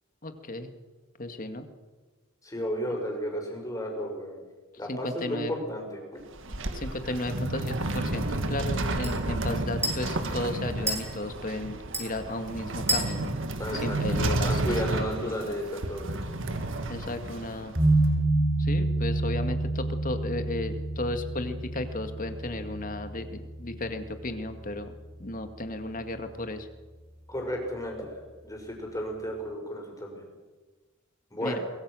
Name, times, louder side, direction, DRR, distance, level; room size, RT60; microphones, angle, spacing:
voice 1, 0.2-0.7 1.2-1.7 4.9-5.5 6.7-13.4 13.7-15.5 16.9-17.7 18.6-26.7 31.4-31.6, left 2 dB, 40° left, 7 dB, 2.1 m, -34 dB
voice 2, 2.4-4.4 4.8-6.0 13.6-14.0 14.4-16.2 27.3-28.1 28.4-30.2 31.3-31.6, equal, 15° left, 1 dB, 5.7 m, -33 dB
sound 1, 6.2-18.1, right 2 dB, 65° right, 1.8 m, -31 dB
sound 2, 6.8-14.6, right 2 dB, 15° right, 7.2 m, -37 dB
sound 3, 17.8-24.8, right 2 dB, 35° right, 2.1 m, -28 dB
23.5 x 22.0 x 6.4 m, 1.3 s
head